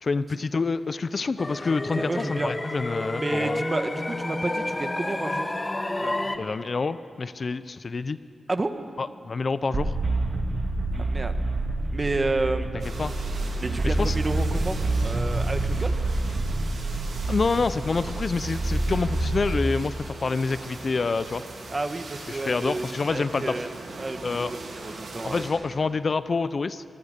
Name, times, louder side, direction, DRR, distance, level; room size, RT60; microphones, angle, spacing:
voice 1, 0.0-3.6 6.4-8.2 9.0-9.9 13.0-13.1 13.8-14.2 17.3-21.4 22.3-23.6 24.2-24.5 25.2-26.8, left 4 dB, 50° left, 14 dB, 0.6 m, -27 dB
sound 1, 1.4-6.4, left 2 dB, 20° left, 1.3 m, -30 dB
voice 2, 2.0-2.5 3.2-5.6 6.0-6.4 8.5-8.8 11.0-11.3 11.9-12.7 13.6-16.0 21.7-23.7 24.0-25.7, right 2 dB, 30° right, 8 dB, 1.4 m, -31 dB
sound 2, 9.7-19.5, right 2 dB, 55° right, 2.2 m, -27 dB
sound 3, 12.8-25.5, right 3 dB, 80° right, 4.0 m, -41 dB
25.5 x 20.5 x 6.7 m, 2.5 s
wide cardioid pair, 95°, 0 cm